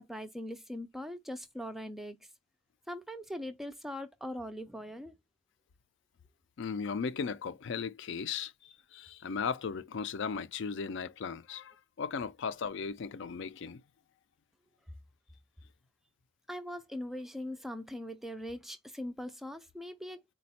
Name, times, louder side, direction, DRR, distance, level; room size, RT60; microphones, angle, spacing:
voice 1, 0.0-2.2 2.9-5.1 16.5-20.2, left 1 dB, ahead, 0.3 m, -41 dB
voice 2, 6.6-13.8, left 5 dB, 65° left, 0.4 m, -37 dB
4.2 x 2.3 x 4.1 m
head